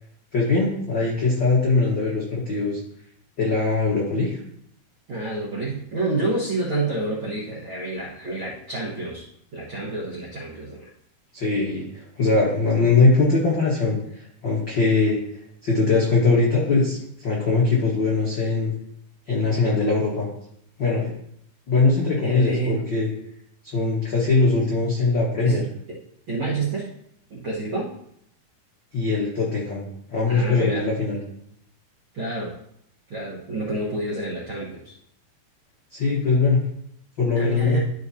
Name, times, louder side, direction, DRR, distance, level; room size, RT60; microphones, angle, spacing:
voice 1, 0.3-2.8 3.4-4.4 11.3-15.2 15.6-17.0 17.2-18.7 19.3-20.3 20.8-21.1 21.7-23.1 23.6-25.6 28.9-31.2 35.9-36.6 37.2-37.8, left 3 dB, 70° left, -5 dB, 1.1 m, -21 dB
voice 2, 5.1-9.3 9.5-10.9 22.2-22.8 25.4-26.0 26.3-26.9 27.3-27.9 30.3-30.9 32.1-32.5 33.1-34.9 37.3-37.8, right 2 dB, 70° right, -6 dB, 1.2 m, -28 dB
12.5 x 5.0 x 2.7 m, 0.71 s
omnidirectional pair, 4.5 m